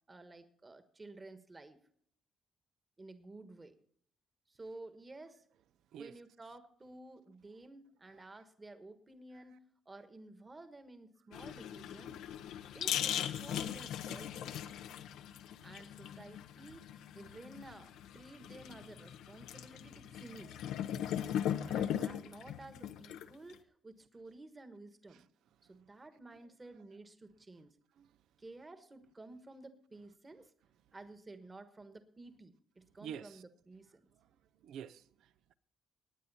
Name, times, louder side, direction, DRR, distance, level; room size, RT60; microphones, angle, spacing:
voice 1, 0.1-1.8 3.0-3.7 4.5-5.4 6.0-12.2 12.7-14.5 15.6-20.6 21.7-25.3 25.6-27.8 28.4-30.5 30.9-34.1, right 2 dB, 25° right, 1.3 m, -53 dB
sound 1, 11.3-23.5, left 10 dB, 90° left, 0.8 m, -39 dB
voice 2, 33.0-33.4 34.6-35.5, right 8 dB, 80° right, 0.5 m, -47 dB
18.0 x 9.4 x 4.2 m
cardioid pair, 90°, 0 cm